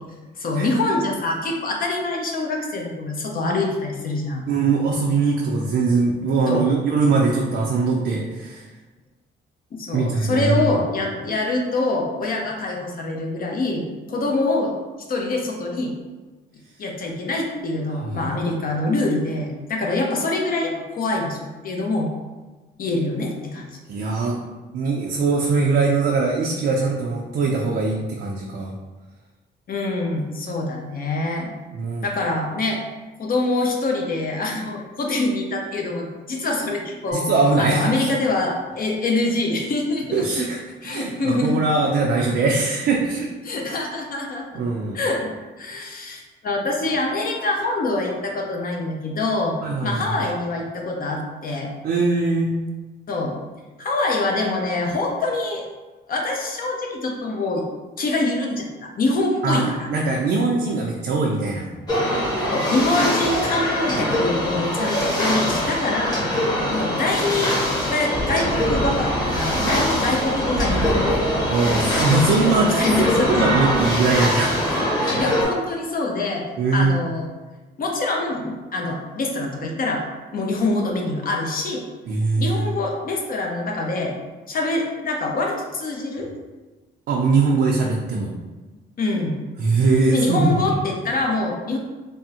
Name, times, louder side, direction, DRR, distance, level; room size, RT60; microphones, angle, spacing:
voice 1, 0.4-4.4 6.5-6.7 9.8-14.7 15.1-15.9 16.8-22.1 22.8-23.7 29.7-31.5 32.0-32.8 33.2-37.2 37.6-40.2 40.8-41.6 43.4-44.6 44.9-51.7 53.1-53.4 53.8-55.6 56.1-57.7 58.0-59.9 62.5-66.3 66.7-71.2 71.8-73.5 74.7-76.4 76.7-77.3 77.8-80.0 80.3-81.8 82.4-84.2 84.5-86.3 89.0-89.3 90.1-91.8, left 2 dB, 45° left, 1 dB, 0.5 m, -25 dB
voice 2, 4.5-8.7 9.9-10.6 18.0-18.3 23.9-24.4 24.7-28.7 31.7-32.1 37.1-38.1 40.1-40.6 40.8-43.3 44.5-45.0 49.6-50.0 51.8-52.5 59.4-61.7 71.5-74.5 75.0-75.3 76.6-76.9 82.1-82.7 87.1-88.3 89.6-90.5, right 3 dB, 60° right, -2 dB, 0.4 m, -21 dB
sound 1, 37.1-39.2, left 9 dB, 85° left, 0.7 m, -37 dB
sound 2, 61.9-75.4, equal, 20° left, 1.0 m, -23 dB
sound 3, 68.1-73.9, right 1 dB, 20° right, 0.6 m, -30 dB
3.4 x 2.0 x 2.8 m, 1.2 s
cardioid pair, 90°, 20 cm